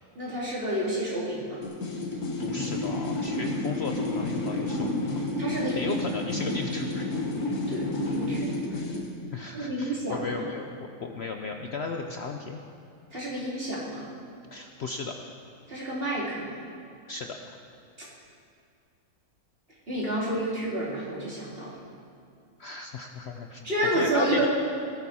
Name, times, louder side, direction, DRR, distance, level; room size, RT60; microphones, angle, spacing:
voice 1, 0.1-1.6 5.4-5.9 7.7-8.8 9.5-10.3 13.1-14.1 15.7-16.5 18.0-18.1 19.9-21.8 23.6-24.5, right 1 dB, 40° right, -6 dB, 3.4 m, -30 dB
sound 1, 1.6-9.1, left 2 dB, 80° left, 2.1 m, -30 dB
voice 2, 2.1-5.1 5.7-7.1 9.3-12.6 14.5-15.2 17.1-17.4 22.6-23.6 23.9-24.5, left 4 dB, 55° left, 4 dB, 0.8 m, -35 dB
18.0 x 13.0 x 4.3 m, 2.5 s
omnidirectional pair, 1.5 m